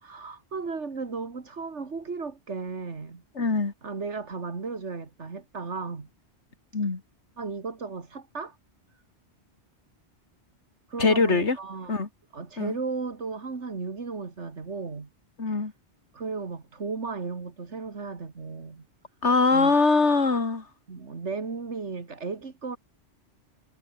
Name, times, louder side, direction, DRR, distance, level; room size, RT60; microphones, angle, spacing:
voice 1, 0.0-3.2 3.8-6.1 7.4-8.6 10.9-12.0 12.3-15.1 15.5-15.6 16.1-18.8 19.5-19.8 20.9-22.8, right 4 dB, 90° right, 2.5 m, -35 dB
voice 2, 3.4-3.7 6.7-7.0 11.0-11.6 11.9-12.1 12.6-12.8 15.4-15.7 19.2-20.7, left 4 dB, 85° left, 2.8 m, -22 dB
omnidirectional pair, 1.2 m